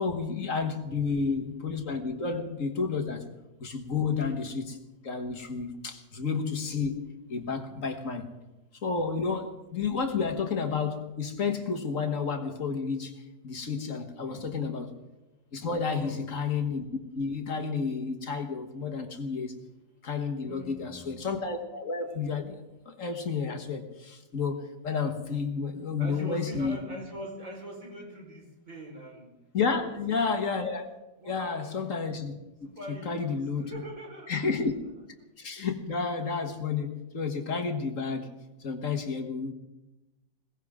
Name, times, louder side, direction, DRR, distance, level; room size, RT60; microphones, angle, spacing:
voice 1, 0.0-3.3 3.6-4.8 5.0-8.3 8.8-13.1 13.4-14.9 15.5-19.5 20.0-26.8 29.5-30.9 31.3-32.3 33.0-33.8 34.3-34.7 35.4-38.3 38.6-39.5, left 5 dB, 50° left, 5 dB, 1.8 m, -31 dB
voice 2, 15.9-16.2 20.4-21.1 26.0-29.3 29.7-30.4 31.2-31.9 32.6-34.6 35.6-35.7, equal, 45° right, -1 dB, 4.8 m, -43 dB
21.5 x 17.5 x 3.6 m, 1.0 s
omnidirectional pair, 1.9 m